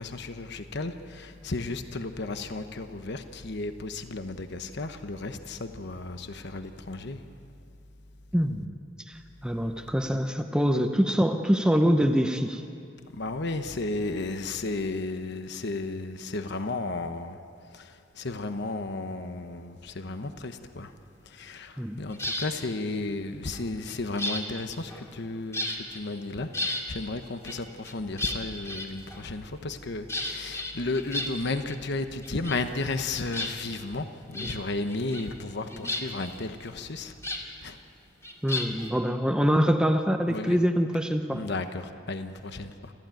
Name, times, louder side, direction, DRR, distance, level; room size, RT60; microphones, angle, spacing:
voice 1, 0.0-7.2 13.1-17.4 17.7-20.9 21.3-37.2 37.6-37.8 40.3-40.6 41.3-42.9, left 2 dB, 60° left, 8 dB, 1.0 m, -34 dB
voice 2, 8.3-8.8 9.1-12.6 21.8-22.0 34.4-34.5 38.4-41.4, equal, 5° right, 5 dB, 0.8 m, -25 dB
sound 1, 22.1-22.5 23.5-25.3 25.5-26.0 26.3-26.9 27.4-29.4 30.1-31.8 32.0-33.0 33.3-34.0 34.3-34.6 34.9-35.4 35.7-37.4 38.2-38.9, left 1 dB, 15° left, 2.5 m, -34 dB
27.5 x 15.0 x 9.2 m, 2.5 s
head